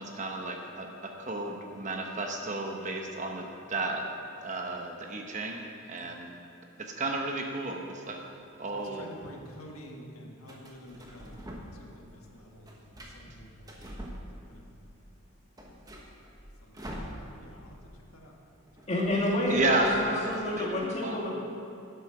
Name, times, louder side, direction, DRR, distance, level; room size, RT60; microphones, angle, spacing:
voice 1, 0.0-4.0 4.4-6.3 6.8-8.2 8.6-9.1 19.5-20.2 20.5-21.1, right 2 dB, 35° right, 2 dB, 0.9 m, -32 dB
sound 1, 8.5-9.3 10.5-11.9 12.2-14.7 15.1-15.2 15.4-17.7 17.9-18.1 18.3-20.4, equal, 15° right, 1.1 m, -45 dB
voice 2, 8.7-13.8 14.4-14.7 16.6-18.3, equal, 80° left, 0 dB, 1.5 m, -50 dB
voice 3, 18.9-21.3, left 1 dB, 30° left, -4 dB, 2.1 m, -29 dB
11.5 x 8.2 x 5.9 m, 2.6 s
head